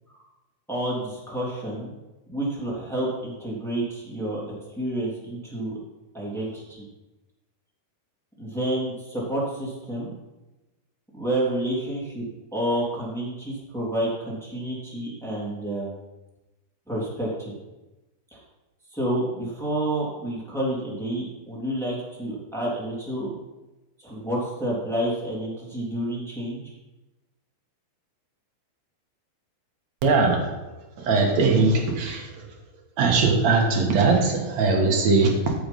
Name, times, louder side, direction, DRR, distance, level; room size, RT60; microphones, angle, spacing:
voice 1, 0.7-1.9 2.3-4.4 4.7-5.8 6.1-6.9 8.4-10.1 11.1-12.2 12.5-15.9 16.9-17.5 18.3-18.4 18.9-23.3 24.0-26.6, right 1 dB, ahead, -6 dB, 2.4 m, -29 dB
voice 2, 30.0-30.5 31.0-32.5 33.0-35.5, right 3 dB, 55° right, 1 dB, 2.2 m, -20 dB
14.0 x 6.5 x 5.4 m, 1.1 s
omnidirectional pair, 4.8 m